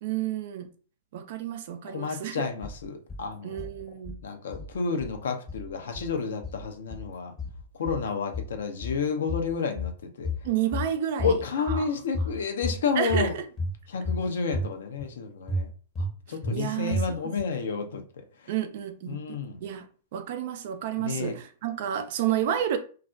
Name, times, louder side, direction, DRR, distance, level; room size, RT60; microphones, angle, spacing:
voice 1, 0.0-0.7 1.1-2.5 3.4-4.2 10.4-11.4 11.6-11.9 13.0-13.4 16.5-17.0 18.5-19.9 20.1-22.8, right 10 dB, 60° right, 0.4 m, -30 dB
voice 2, 1.9-3.7 4.2-7.3 7.7-9.9 10.2-10.3 11.2-13.3 13.9-15.7 16.0-18.5 19.1-19.6 21.0-21.3, left 5 dB, 75° left, 0.5 m, -30 dB
sound 1, 2.6-3.2 3.6-4.2 4.5-5.2 5.5-6.2 6.4-7.1 7.4-8.1 8.3-9.0 9.3-10.0 10.2-10.9 11.2-11.8 12.1-12.8 13.1-13.7 14.0-14.7 15.0-15.1 15.5-16.1 16.4-16.6 16.9-17.4, left 2 dB, 20° left, 0.7 m, -32 dB
2.4 x 2.0 x 2.5 m
hypercardioid pair, 115°, 0 cm